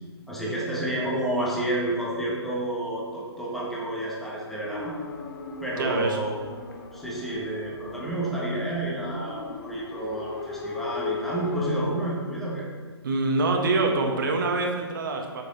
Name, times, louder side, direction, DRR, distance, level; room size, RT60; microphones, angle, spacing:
voice 1, 0.3-4.9 5.6-12.7, right 1 dB, ahead, -6 dB, 1.5 m, -30 dB
sound 1, 4.7-11.9, left 4 dB, 45° left, 1.2 m, -37 dB
voice 2, 5.8-6.2 13.0-15.4, right 3 dB, 50° right, 2 dB, 1.5 m, -25 dB
9.0 x 6.8 x 4.2 m, 1.5 s
figure-of-eight pair, 130°, 14 cm